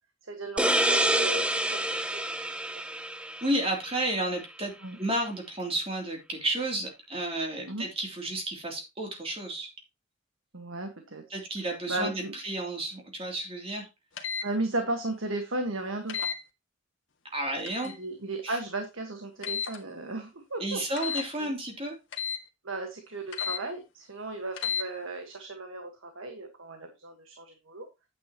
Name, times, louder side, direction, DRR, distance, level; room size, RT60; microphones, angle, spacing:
voice 1, 0.3-2.3 4.8-5.0 7.7-7.8 10.5-11.4 11.9-12.4 14.4-16.2 18.0-21.5 22.6-27.9, right 2 dB, 75° right, 5 dB, 1.6 m, -35 dB
sound 1, 0.6-4.0, right 1 dB, 5° right, 0.6 m, -27 dB
voice 2, 3.4-4.7 5.0-9.7 11.3-13.9 17.3-17.9 18.4-18.6 20.6-22.0, right 1 dB, 30° right, 2 dB, 3.1 m, -32 dB
sound 2, 14.2-14.5 16.1-16.4 17.7-18.0 19.4-19.8 21.0-21.3 22.1-22.4 23.3-23.6 24.5-24.9, left 7 dB, 65° left, 1.8 m, -32 dB
9.4 x 8.9 x 3.0 m, 0.24 s
head